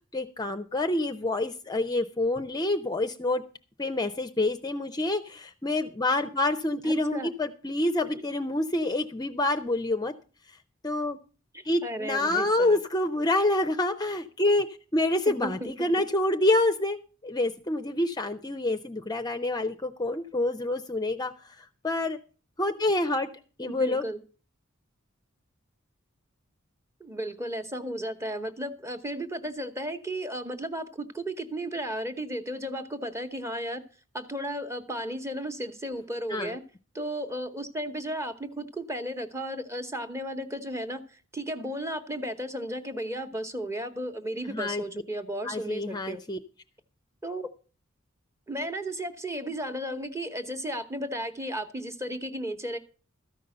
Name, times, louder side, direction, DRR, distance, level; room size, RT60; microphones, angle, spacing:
voice 1, 0.1-3.4 3.8-10.1 10.8-11.2 11.6-14.7 14.9-21.3 21.8-22.2 22.6-23.3 23.6-24.0 36.3-36.5 44.5-44.8 45.4-46.4, left 2 dB, 20° left, 9 dB, 0.5 m, -27 dB
voice 2, 6.8-7.3 8.1-8.2 11.5-12.8 15.3-15.7 23.6-24.2 27.0-33.8 34.1-36.6 36.9-46.2 47.2-47.5 48.5-52.8, right 1 dB, 15° right, 8 dB, 0.9 m, -34 dB
13.5 x 5.4 x 7.7 m, 0.37 s
head